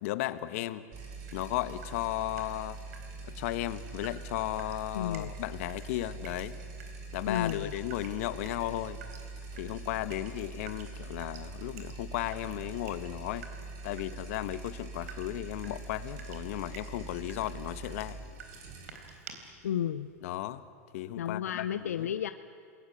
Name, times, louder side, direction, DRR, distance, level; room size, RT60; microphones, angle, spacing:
voice 1, 0.0-0.8 1.3-2.8 3.2-6.6 7.1-9.0 9.6-13.5 13.8-18.2 20.2-20.6 20.9-22.1, left 15 dB, 65° left, 13 dB, 1.3 m, -35 dB
sound 1, 0.9-20.2, right 3 dB, 50° right, 7.0 m, -44 dB
Water tap faucet / Drip, 1.3-19.3, right 6 dB, 80° right, 4.0 m, -53 dB
voice 2, 4.9-5.3 7.2-7.7 19.6-20.1 21.2-22.3, left 10 dB, 85° left, 10 dB, 0.7 m, -32 dB
28.0 x 21.0 x 8.9 m, 2.2 s
hypercardioid pair, 110°, 8 cm